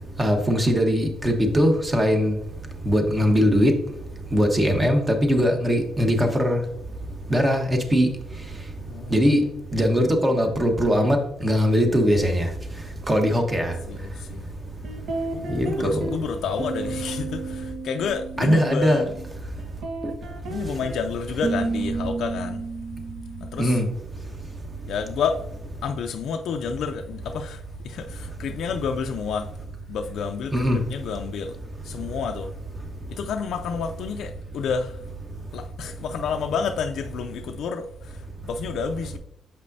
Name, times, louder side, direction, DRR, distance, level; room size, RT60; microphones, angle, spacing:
voice 1, 0.2-2.3 2.8-3.7 4.3-6.6 7.3-8.1 9.1-9.4 9.7-12.5 13.1-13.7 15.5-16.1 18.4-19.0 23.6-23.9 30.5-30.8, equal, 20° right, 1.1 m, -20 dB
voice 2, 8.9-9.6 13.9-14.5 15.3-19.1 20.4-22.7 23.4-23.8 24.9-25.5 25.8-29.5 29.9-31.6 31.8-32.5 33.1-35.1 35.5-39.2, left 6 dB, 75° left, 0.4 m, -30 dB
sound 1, 14.8-16.3 16.6-19.3 19.6-23.9, right 3 dB, 65° right, 1.0 m, -32 dB
7.2 x 5.3 x 2.7 m
cardioid pair, 90°, 0 cm